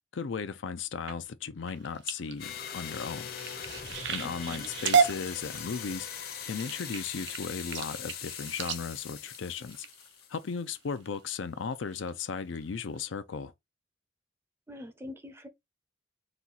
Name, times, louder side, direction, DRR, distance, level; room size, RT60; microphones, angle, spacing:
voice 1, 0.1-3.3 4.1-6.1 6.4-9.9 10.3-13.5, left 5 dB, 75° left, 0.5 m, -36 dB
sound 1, 0.9-1.8 2.1-2.4 2.7-6.2, right 3 dB, 90° right, 2.4 m, -54 dB
sound 2, 1.7-10.4 11.0-11.3 11.7-12.1 12.5-12.6 13.0-13.1, right 6 dB, 65° right, 0.7 m, -32 dB
sound 3, 2.4-10.7, left 8 dB, 50° left, 0.8 m, -41 dB
voice 2, 4.2-4.7 14.7-15.5, left 1 dB, 15° right, 0.6 m, -44 dB
4.3 x 2.4 x 3.9 m
head